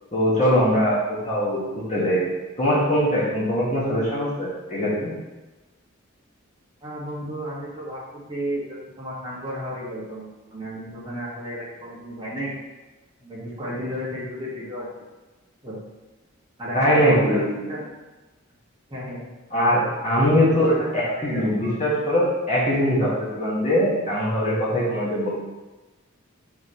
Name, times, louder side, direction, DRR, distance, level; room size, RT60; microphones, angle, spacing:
voice 1, 0.1-2.3 2.6-5.1 16.7-17.4 19.5-25.3, equal, 30° left, -7 dB, 2.0 m, -21 dB
voice 2, 6.8-8.0 8.3-12.5 13.2-14.9 15.6-15.8 16.6-17.9 18.9-19.2 20.5-21.9, equal, 20° right, -8 dB, 2.0 m, -33 dB
8.1 x 5.7 x 3.3 m, 1.1 s
head